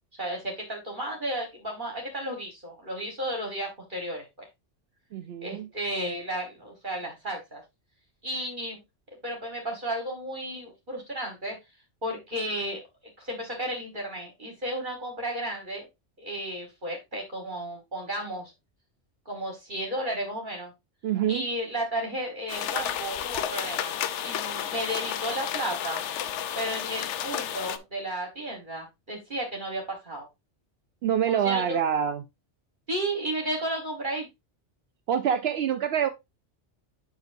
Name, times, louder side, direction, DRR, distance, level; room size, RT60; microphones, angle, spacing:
voice 1, 0.2-4.5 5.4-7.6 8.2-8.8 9.2-11.6 12.0-12.8 13.2-15.9 16.2-18.5 19.3-20.7 21.3-23.9 24.2-26.0 26.6-30.3 31.3-31.8 32.9-34.3, right 1 dB, 45° right, 1.6 m, -33 dB
voice 2, 5.1-5.7 21.0-21.4 31.0-32.2 35.1-36.1, right 9 dB, 65° right, 0.7 m, -26 dB
sound 1, 22.5-27.8, left 9 dB, 80° left, 0.9 m, -32 dB
7.8 x 6.1 x 2.6 m
omnidirectional pair, 1.2 m